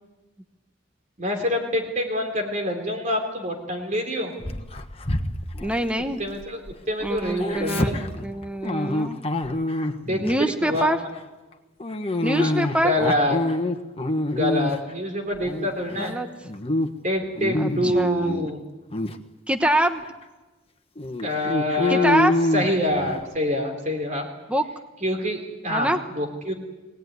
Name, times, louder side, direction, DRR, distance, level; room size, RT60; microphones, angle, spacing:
voice 1, 1.2-4.3 6.2-6.6 6.9-8.0 10.1-10.2 10.6-11.0 12.4-12.5 12.8-13.4 14.4-16.2 17.0-18.6 21.2-22.2 22.5-24.3 25.0-26.5, left 1 dB, 40° right, 3 dB, 3.7 m, -26 dB
Dog, 4.4-6.7 7.0-10.3 10.7-11.0 11.8-14.9 15.3-16.1 16.5-16.9 17.2-18.5 18.9-19.2 19.8-19.9 20.2-20.3 21.0-23.3, left 1 dB, 30° left, 1.4 m, -26 dB
voice 2, 5.6-6.2 7.0-9.2 10.2-11.0 12.2-12.9 16.0-16.3 17.6-18.3 19.5-20.1 21.9-22.4 24.5-24.7 25.7-26.0, right 1 dB, 5° right, 7 dB, 1.1 m, -24 dB
23.0 x 18.5 x 9.6 m, 1.2 s
head